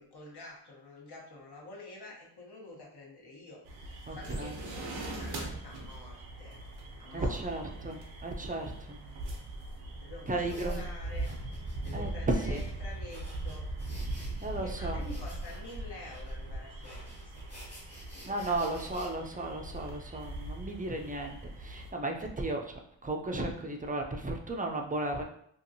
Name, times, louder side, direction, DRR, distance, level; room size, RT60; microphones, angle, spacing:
voice 1, 0.0-6.6 7.0-7.4 10.0-11.3 11.8-13.7 14.2-17.4 18.2-18.8 22.2-22.3, left 2 dB, 60° left, -2 dB, 1.0 m, -48 dB
sound 1, 3.6-21.9, right 2 dB, 85° right, 0.7 m, -41 dB
voice 2, 4.1-4.6 7.1-9.0 10.3-10.8 11.9-12.6 14.4-15.0 18.2-22.6 23.0-25.2, right 2 dB, 20° right, 2 dB, 0.4 m, -34 dB
sound 2, 10.3-19.1, equal, 35° left, 1.3 m, -47 dB
2.7 x 2.5 x 2.7 m, 0.70 s
cardioid pair, 55°, 44 cm